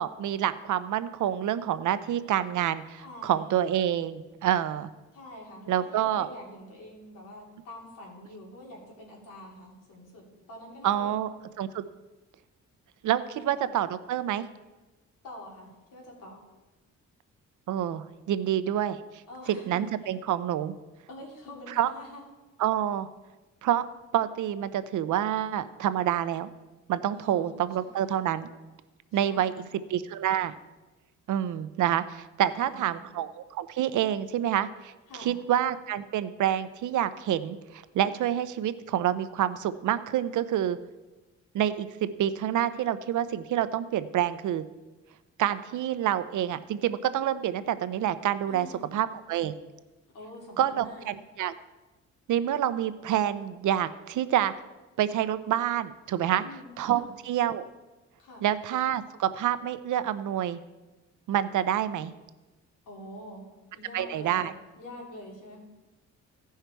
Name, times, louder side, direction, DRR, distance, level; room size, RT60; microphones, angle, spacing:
voice 1, 0.0-4.9 5.7-6.3 10.8-11.3 11.6-11.8 13.0-14.4 17.7-19.0 19.5-20.7 21.8-21.9 22.6-23.1 23.6-23.9 24.1-26.5 26.9-28.5 29.1-29.5 29.9-30.5 31.3-34.9 35.2-40.8 41.5-44.6 45.4-48.7 48.9-49.6 50.6-51.5 52.3-54.5 55.0-56.4 56.8-57.6 58.4-60.6 61.3-62.1 63.9-64.5, right 11 dB, 70° right, 13 dB, 0.6 m, -27 dB
voice 2, 3.0-3.6 5.1-11.3 13.2-13.8 15.2-16.4 19.3-20.1 21.1-22.2 27.1-28.4 29.1-29.8 32.5-33.0 35.1-35.4 48.5-48.9 50.1-51.1 56.3-57.1 58.2-58.5 62.9-65.6, left 1 dB, 90° left, -2 dB, 3.2 m, -46 dB
16.0 x 5.6 x 4.6 m, 1.1 s
cardioid pair, 135°, 31 cm